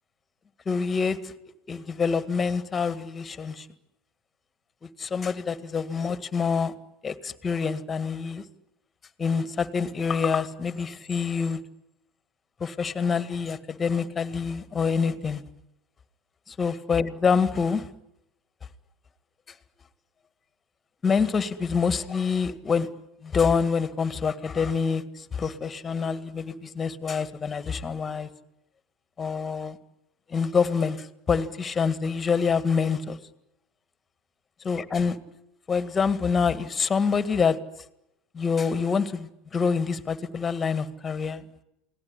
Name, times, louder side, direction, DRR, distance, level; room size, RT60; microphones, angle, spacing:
voice 1, 0.7-1.3 1.7-3.7 4.8-6.7 7.0-8.4 9.2-11.6 12.6-15.4 16.5-17.9 21.0-22.9 23.2-28.3 29.2-29.8 30.3-33.2 34.6-35.2 35.7-37.6 38.3-41.4, left 5 dB, 25° left, 13 dB, 1.9 m, -26 dB
28.5 x 19.5 x 10.0 m, 0.85 s
figure-of-eight pair, 75°, 0 cm